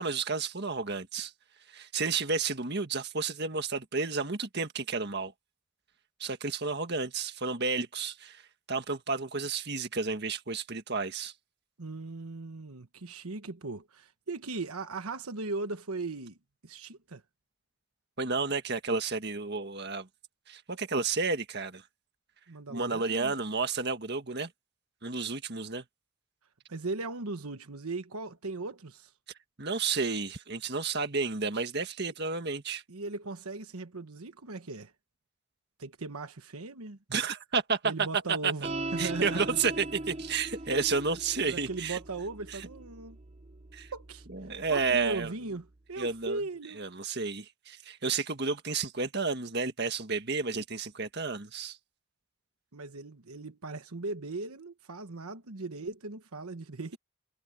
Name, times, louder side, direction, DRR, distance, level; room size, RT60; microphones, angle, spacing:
voice 1, 0.0-1.3 1.7-5.3 6.2-8.4 8.7-11.3 18.2-20.1 20.5-21.8 22.7-24.5 25.0-25.8 29.6-32.8 37.1-37.8 38.3-38.5 39.0-42.0 42.5-42.7 43.7-43.9 44.3-45.3 46.0-46.4 46.8-51.8, right 4 dB, 45° right, 1.7 m, -31 dB
voice 2, 11.8-16.4 16.6-17.2 22.5-23.3 26.7-29.1 32.9-34.9 35.8-37.0 37.8-39.6 41.5-43.2 43.9-44.3 44.7-46.8 52.7-57.0, right 3 dB, 80° right, 1.2 m, -38 dB
sound 1, 38.6-45.3, right 2 dB, 25° right, 0.7 m, -41 dB
head